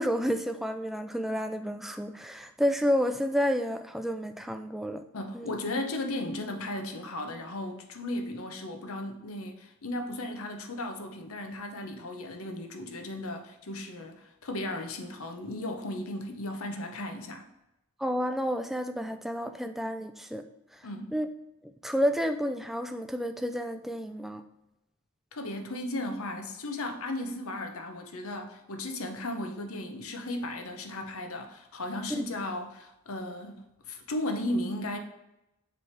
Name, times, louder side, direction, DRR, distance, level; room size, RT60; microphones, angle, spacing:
voice 1, 0.0-5.0 5.3-5.6 18.0-20.4 21.1-21.3 21.8-24.4 32.1-32.2, equal, ahead, 7 dB, 0.3 m, -30 dB
voice 2, 5.1-17.5 20.8-21.1 25.3-35.0, left 1 dB, 80° left, 5 dB, 0.9 m, -35 dB
6.9 x 3.4 x 4.6 m, 0.91 s
head